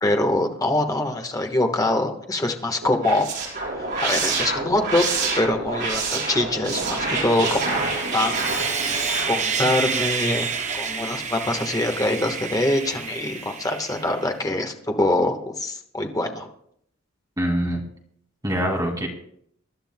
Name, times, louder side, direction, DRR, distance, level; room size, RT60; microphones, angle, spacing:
voice 1, 0.0-3.3 3.7-5.0 5.4-7.8 8.1-8.4 8.9-9.0 9.3-16.5, left 1 dB, 20° left, 4 dB, 1.3 m, -24 dB
sound 1, 2.8-10.9, right 3 dB, 60° right, 4.7 m, -28 dB
Sawing, 6.8-14.3, right 5 dB, 35° right, 0.9 m, -29 dB
voice 2, 17.4-17.8 18.4-19.1, equal, 20° right, 1 dB, 2.3 m, -24 dB
24.0 x 11.5 x 2.2 m, 0.68 s
head